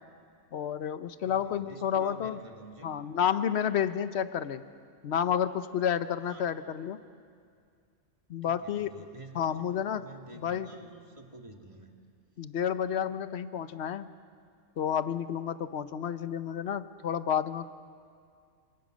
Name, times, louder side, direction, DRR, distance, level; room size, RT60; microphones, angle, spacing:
voice 1, 0.5-2.4 2.8-4.6 5.0-7.0 8.3-9.1 9.3-10.1 10.4-10.7 12.4-14.1 14.8-17.7, left 8 dB, 60° left, 13 dB, 1.0 m, -30 dB
voice 2, 1.2-2.9 6.3-6.4 8.4-9.7 10.0-11.9, right 2 dB, 25° right, 2 dB, 2.0 m, -49 dB
26.5 x 25.0 x 6.4 m, 2.2 s
omnidirectional pair, 1.4 m